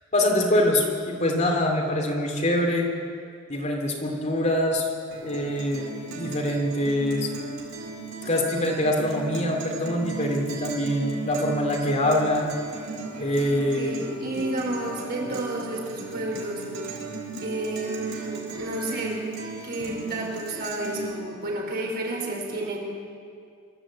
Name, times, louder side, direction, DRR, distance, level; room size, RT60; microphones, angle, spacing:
voice 1, 0.1-2.9 3.5-4.9 5.2-5.9 6.1-7.3 8.2-12.5 13.2-14.0, left 1 dB, 35° left, 1 dB, 2.7 m, -24 dB
Guitar, 5.1-21.1, right 4 dB, 75° right, 4.6 m, -36 dB
voice 2, 13.6-16.6 17.4-19.3 19.6-22.8, right 1 dB, 50° right, -1 dB, 5.0 m, -31 dB
24.5 x 13.5 x 8.6 m, 2.3 s
head